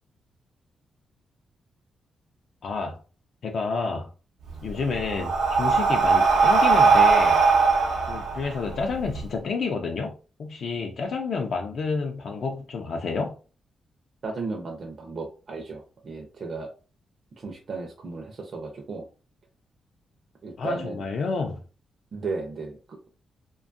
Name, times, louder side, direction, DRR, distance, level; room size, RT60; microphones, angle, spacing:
voice 1, 2.6-3.0 3.4-4.1 4.6-7.4 8.1-10.1 10.4-13.4 20.6-21.6, left 4 dB, 55° left, 0.4 m, -29 dB
Breathing, 4.5-9.2, right 4 dB, 90° right, 0.6 m, -20 dB
voice 2, 14.2-16.7 17.4-19.1 20.4-21.0 22.1-23.1, right 3 dB, 40° right, 0.4 m, -35 dB
2.6 x 2.3 x 2.5 m
wide cardioid pair, 155°, 0 cm